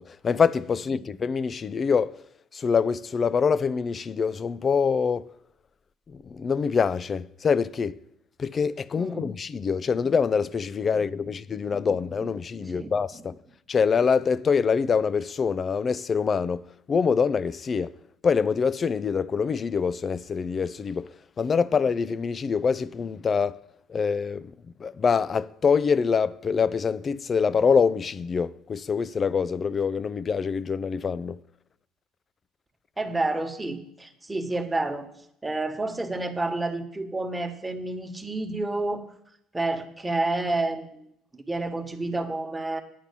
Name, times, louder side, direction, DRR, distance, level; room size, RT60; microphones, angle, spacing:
voice 1, 0.1-2.2 2.5-5.3 6.1-8.0 8.4-13.4 13.7-17.9 18.2-23.6 23.9-24.5 24.8-31.4, left 6 dB, 40° left, 0.5 m, -25 dB
voice 2, 9.0-9.3 10.9-11.0 11.9-12.3 12.6-12.9 33.0-35.1 35.4-39.1 39.5-41.1 41.3-42.8, right 2 dB, 15° right, 1.4 m, -30 dB
9.5 x 5.8 x 8.4 m
hypercardioid pair, 70°, 0 cm